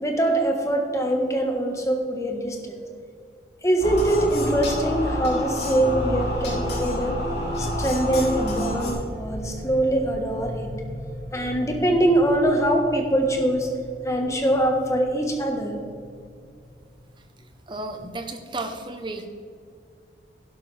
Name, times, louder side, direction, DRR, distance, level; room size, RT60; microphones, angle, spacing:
voice 1, 0.0-2.6 3.6-7.1 7.6-10.7 11.3-13.7 14.0-15.7, right 1 dB, 15° left, 2 dB, 1.4 m, -23 dB
sound 1, 3.8-8.9, left 1 dB, 65° left, 3.3 m, -28 dB
sound 2, 7.4-17.6, left 1 dB, 45° right, 2.8 m, -40 dB
voice 2, 17.7-19.3, right 2 dB, 25° right, 6 dB, 0.9 m, -33 dB
12.0 x 11.5 x 3.4 m, 2.2 s
head